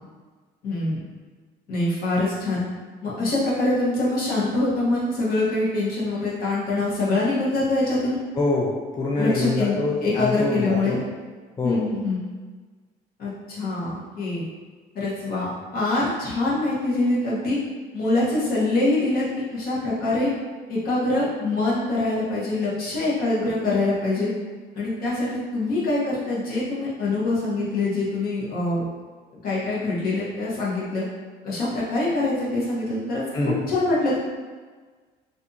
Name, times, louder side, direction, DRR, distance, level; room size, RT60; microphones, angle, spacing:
voice 1, 0.6-1.0 1.7-2.6 3.0-8.2 9.2-11.0 11.6-12.2 13.2-14.5 14.9-17.6 17.9-19.2 19.5-20.3 20.7-24.3 24.7-28.8 29.4-31.0 31.4-33.2 33.7-34.2, left 2 dB, 60° left, -7 dB, 1.0 m, -24 dB
voice 2, 8.4-11.0 11.6-11.8 33.3-33.7, left 3 dB, 25° left, -3 dB, 0.4 m, -25 dB
2.7 x 2.6 x 2.3 m, 1.4 s
cardioid pair, 110°, 17 cm